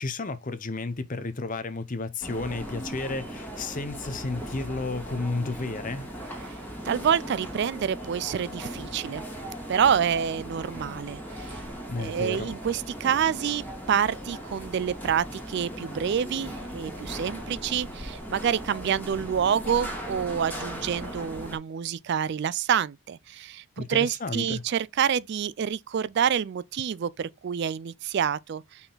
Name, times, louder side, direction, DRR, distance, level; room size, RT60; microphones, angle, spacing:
voice 1, 0.0-6.1 11.9-12.5 23.8-24.6, left 3 dB, 35° left, 0.8 m, -32 dB
sound 1, 2.2-21.6, right 1 dB, 10° left, 2.1 m, -38 dB
voice 2, 6.8-9.2 9.7-11.6 12.0-28.8, right 8 dB, 50° right, 0.3 m, -27 dB
5.5 x 4.3 x 3.9 m
head